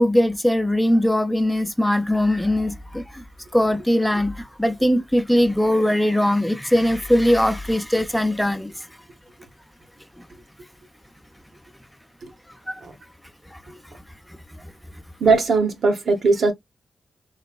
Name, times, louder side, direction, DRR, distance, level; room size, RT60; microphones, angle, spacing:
voice 1, 0.0-3.2 3.5-8.9 10.2-10.3 12.7-12.8 13.5-13.9 14.3-14.7, left 1 dB, 5° left, 0.6 m, -21 dB
voice 2, 15.2-16.5, right 4 dB, 75° right, 0.9 m, -19 dB
3.2 x 2.8 x 2.3 m
cardioid pair, 55°, 0 cm